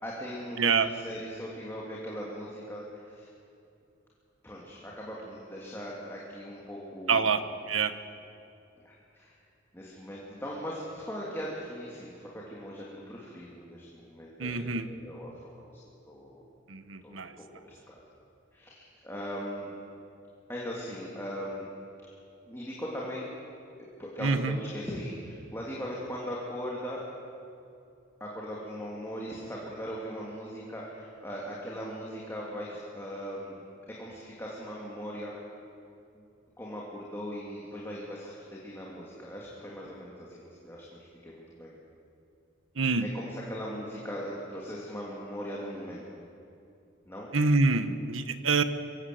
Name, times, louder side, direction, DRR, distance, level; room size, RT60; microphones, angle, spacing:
voice 1, 0.0-3.3 4.4-7.3 8.8-9.4 9.7-15.8 16.1-16.4 17.0-18.0 18.5-19.7 20.5-21.7 22.5-23.3 24.0-27.0 28.2-33.6 34.0-35.3 36.1-36.2 36.6-41.8 43.0-46.1 47.1-47.3, equal, 10° left, -5 dB, 2.8 m, -39 dB
voice 2, 0.6-0.9 7.1-7.4 7.7-7.9 14.4-14.8 16.7-17.3 24.2-24.6 42.8-43.1 47.3-48.6, right 4 dB, 90° right, 11 dB, 1.1 m, -26 dB
24.0 x 16.5 x 7.8 m, 2.6 s
head